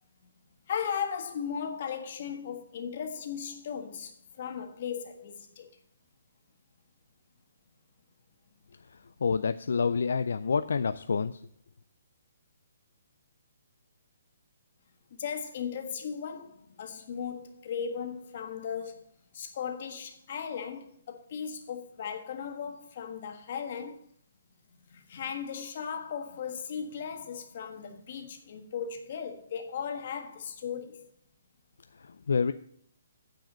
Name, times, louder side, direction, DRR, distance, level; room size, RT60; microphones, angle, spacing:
voice 1, 0.7-5.7 15.1-19.0 19.3-24.0 24.9-31.1, left 7 dB, 45° left, 1.4 m, -37 dB
voice 2, 9.2-11.4 32.3-32.5, left 5 dB, 75° left, 0.4 m, -27 dB
9.0 x 4.9 x 7.3 m
hypercardioid pair, 160°, 0 cm